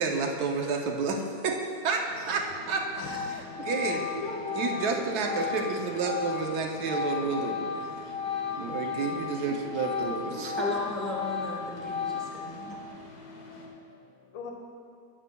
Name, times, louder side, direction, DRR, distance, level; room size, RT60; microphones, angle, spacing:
voice 1, 0.0-1.6 1.8-2.8 3.7-4.0 4.6-7.6 8.5-10.5, right 4 dB, 65° right, 2 dB, 1.0 m, -30 dB
sound 1, 2.1-13.7, left 3 dB, 60° left, 1.4 m, -47 dB
Organ, 2.5-2.7 3.0-9.4 9.7-12.6, left 6 dB, 40° left, 1.7 m, -34 dB
voice 2, 3.0-5.4 10.1-10.5 12.3-13.0 13.5-14.5, left 2 dB, 85° left, 1 dB, 1.8 m, -43 dB
voice 3, 10.6-12.8, left 1 dB, ahead, -3 dB, 0.8 m, -36 dB
11.5 x 8.9 x 2.2 m, 2.4 s
omnidirectional pair, 2.1 m